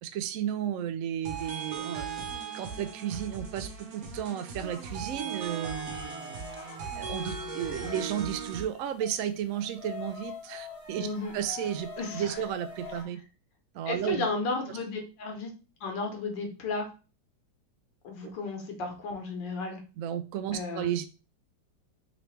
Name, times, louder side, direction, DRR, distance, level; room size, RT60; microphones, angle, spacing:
voice 1, 0.0-2.1 2.5-6.4 6.9-13.2 13.7-14.3 18.2-18.3 20.0-21.0, right 10 dB, 85° right, 9 dB, 0.7 m, -33 dB
sound 1, 1.3-8.6, right 5 dB, 60° right, 1.2 m, -38 dB
sound 2, 4.6-8.4 8.7-13.0, left 4 dB, 25° left, 0.7 m, -45 dB
voice 2, 11.0-11.4 12.0-12.3 13.9-15.5 15.8-16.9 18.0-19.8 20.5-20.9, left 3 dB, 75° left, 3 dB, 1.6 m, -33 dB
3.8 x 3.1 x 3.2 m, 0.33 s
omnidirectional pair, 2.0 m